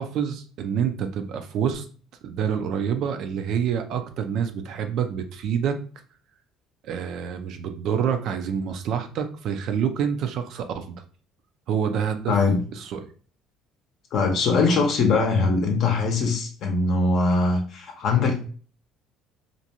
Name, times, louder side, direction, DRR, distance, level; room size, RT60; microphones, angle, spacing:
voice 1, 0.0-1.8 2.2-5.8 6.8-11.0 11.7-12.4 12.8-13.0, right 8 dB, 60° right, 7 dB, 0.4 m, -27 dB
voice 2, 12.3-12.6 14.1-18.4, left 3 dB, 55° left, 1 dB, 0.6 m, -22 dB
2.5 x 2.2 x 2.8 m, 0.41 s
cardioid pair, 120°, 0 cm